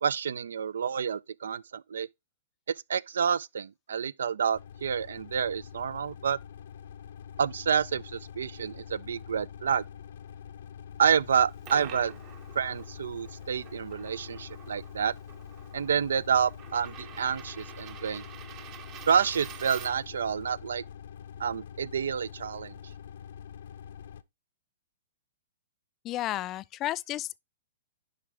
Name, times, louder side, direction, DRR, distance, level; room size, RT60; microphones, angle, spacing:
voice 1, 0.0-2.1 2.9-6.4 7.4-9.8 11.0-12.1 12.6-15.1 15.7-18.2 19.1-20.8 21.4-22.8, right 7 dB, 75° right, 0.3 m, -28 dB
sound 1, 4.5-24.2, left 8 dB, 65° left, 0.7 m, -45 dB
Coin (dropping), 11.3-20.2, right 10 dB, 35° right, 0.8 m, -48 dB
voice 2, 26.0-27.4, left 15 dB, 30° left, 0.3 m, -32 dB
10.5 x 3.8 x 3.4 m
hypercardioid pair, 115°, 0 cm